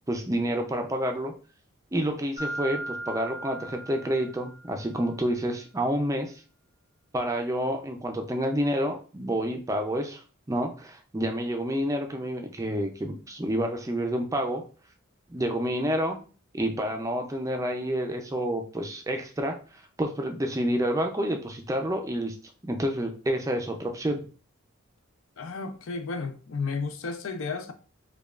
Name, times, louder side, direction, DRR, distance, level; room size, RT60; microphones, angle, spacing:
voice 1, 0.1-1.3 1.9-6.3 7.1-10.2 10.5-14.6 15.3-16.2 16.5-22.3 22.6-24.2, equal, 15° right, 0.4 m, -29 dB
Mallet percussion, 2.4-4.9, right 1 dB, 40° left, 1.6 m, -37 dB
voice 2, 25.4-27.7, left 4 dB, 70° left, 0.5 m, -33 dB
5.0 x 2.3 x 2.3 m
head